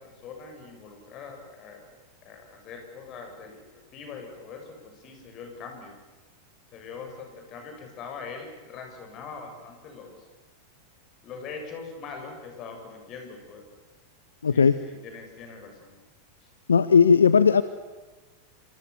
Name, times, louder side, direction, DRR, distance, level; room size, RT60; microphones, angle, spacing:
voice 1, 0.0-1.8 2.2-3.6 3.9-5.9 6.7-10.2 11.2-13.7 14.5-16.0 16.4-16.5, left 5 dB, 35° left, 4 dB, 7.6 m, -42 dB
voice 2, 14.4-14.8 16.7-17.6, left 6 dB, 70° left, 15 dB, 0.8 m, -17 dB
27.0 x 26.5 x 7.1 m, 1.3 s
figure-of-eight pair, 90°, 0 cm